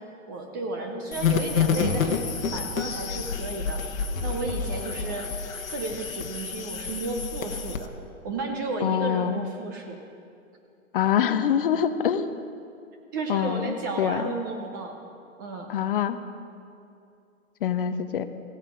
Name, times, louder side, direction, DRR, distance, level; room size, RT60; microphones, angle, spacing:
voice 1, 0.0-3.8 4.2-5.3 5.7-7.9 8.2-10.0 13.1-15.0 15.4-15.7, right 3 dB, 15° right, 3 dB, 0.4 m, -33 dB
sound 1, 1.1-7.9, left 6 dB, 80° left, 1.1 m, -29 dB
voice 2, 8.8-9.4 10.9-12.3 13.3-14.3 15.7-16.2 17.6-18.3, left 9 dB, 45° left, 11 dB, 0.6 m, -25 dB
16.0 x 7.9 x 6.0 m, 2.5 s
hypercardioid pair, 145°, 40 cm